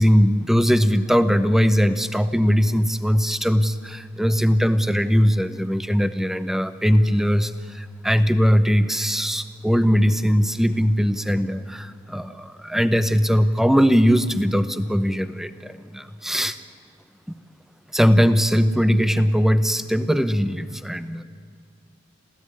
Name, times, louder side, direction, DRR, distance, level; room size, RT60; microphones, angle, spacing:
voice 1, 0.0-16.6 17.9-21.2, equal, ahead, 11 dB, 0.8 m, -20 dB
27.0 x 16.0 x 9.7 m, 2.2 s
head